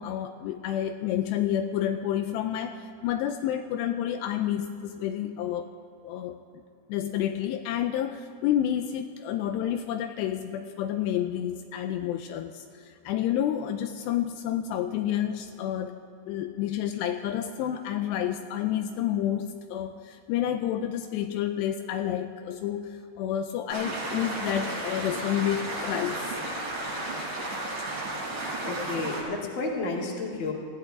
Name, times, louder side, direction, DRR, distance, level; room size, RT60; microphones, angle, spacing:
voice 1, 0.0-5.7 6.0-6.4 6.9-16.0 16.3-26.2, left 10 dB, 90° left, 7 dB, 2.5 m, -29 dB
sound 1, 23.7-29.2, right 2 dB, 60° right, 7.4 m, -33 dB
voice 2, 28.7-30.5, left 3 dB, 35° left, -2 dB, 2.1 m, -31 dB
23.0 x 16.0 x 3.6 m, 2.4 s
omnidirectional pair, 5.5 m